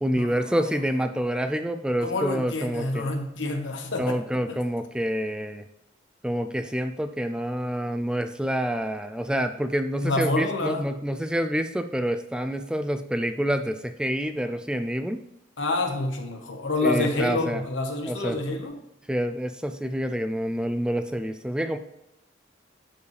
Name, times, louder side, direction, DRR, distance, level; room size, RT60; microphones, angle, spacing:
voice 1, 0.0-3.1 4.0-5.6 6.2-15.2 16.8-17.6 18.1-18.4 19.1-21.8, equal, 5° right, 8 dB, 0.3 m, -27 dB
voice 2, 2.0-4.2 4.5-4.6 10.0-10.9 15.6-18.8, left 2 dB, 75° left, 4 dB, 1.2 m, -28 dB
11.5 x 4.8 x 3.3 m, 0.86 s
head